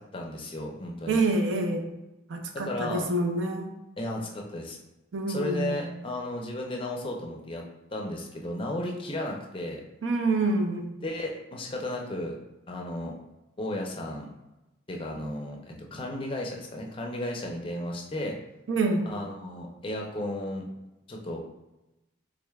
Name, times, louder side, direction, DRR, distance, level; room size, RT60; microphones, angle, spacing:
voice 1, 0.1-1.2 2.5-3.1 4.0-4.8 5.3-7.6 7.9-9.8 11.0-12.4 12.7-13.1 13.6-14.3 14.9-18.4 19.1-20.7 21.1-21.4, left 1 dB, 25° left, 0 dB, 0.5 m, -34 dB
voice 2, 1.1-1.9 2.3-3.7 5.1-5.8 10.0-10.8 18.7-19.1, right 2 dB, 70° right, 4 dB, 0.5 m, -26 dB
3.8 x 3.1 x 2.3 m, 0.98 s
head